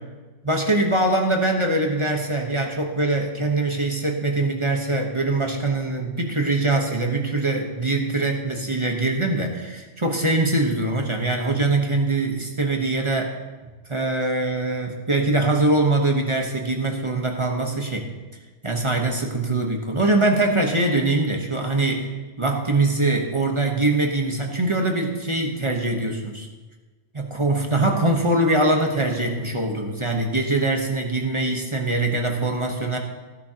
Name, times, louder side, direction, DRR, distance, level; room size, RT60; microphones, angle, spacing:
voice 1, 0.4-13.4 13.9-18.1 18.6-22.1 22.4-26.5 27.1-33.0, right 2 dB, 25° right, 1 dB, 1.1 m, -23 dB
15.5 x 11.0 x 2.9 m, 1.3 s
omnidirectional pair, 1.3 m